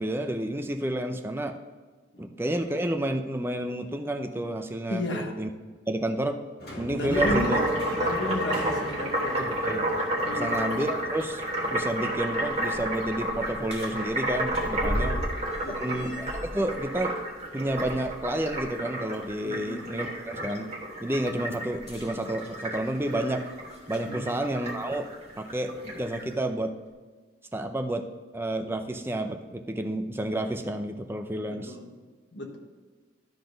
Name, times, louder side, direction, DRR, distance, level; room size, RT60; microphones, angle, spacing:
voice 1, 0.0-1.6 2.2-5.5 5.9-6.4 6.8-7.6 9.4-9.9 10.3-11.4 11.7-15.1 15.8-17.1 17.5-20.7 21.0-23.4 23.9-25.1 25.4-26.7 27.5-28.0 28.3-31.7, right 1 dB, 10° right, 5 dB, 0.5 m, -30 dB
voice 2, 4.9-5.3 6.9-9.5 10.2-10.6 14.8-15.2 15.6-16.1 19.4-19.9 24.1-24.3 31.3-32.0 32.3-32.6, left 2 dB, 75° left, 2 dB, 1.4 m, -33 dB
sound 1, 6.6-11.8, equal, 55° left, 2.0 m, -41 dB
sound 2, 7.1-26.2, right 1 dB, 35° right, 1.3 m, -31 dB
sound 3, 12.7-18.7 19.1-19.3 21.7-24.1 25.1-25.2 26.0-26.1, equal, 30° left, 2.5 m, -38 dB
12.0 x 4.1 x 5.2 m, 1.4 s
head